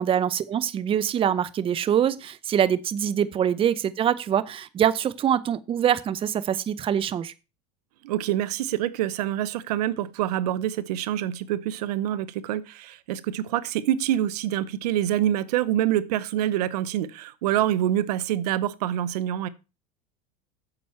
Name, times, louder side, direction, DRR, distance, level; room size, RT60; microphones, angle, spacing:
voice 1, 0.0-7.3, right 9 dB, 30° right, 0.6 m, -24 dB
voice 2, 8.0-19.5, right 12 dB, 85° right, 0.8 m, -26 dB
8.9 x 7.3 x 4.5 m
supercardioid pair, 115°, 20 cm